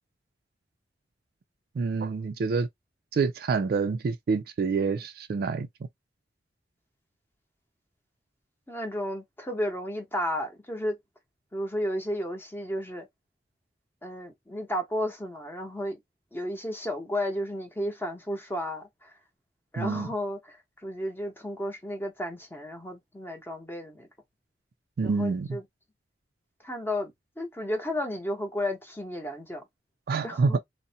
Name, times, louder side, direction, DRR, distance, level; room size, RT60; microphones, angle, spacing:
voice 1, 1.8-2.7 3.1-5.7 19.8-20.1 25.0-25.6 30.1-30.6, right 4 dB, 55° right, 0.3 m, -27 dB
voice 2, 8.7-11.0 11.5-13.1 14.0-16.0 16.3-19.1 19.7-20.6 20.8-24.1 25.0-25.6 26.6-29.6 30.2-30.6, left 1 dB, 10° left, 0.8 m, -33 dB
2.6 x 2.1 x 2.7 m
head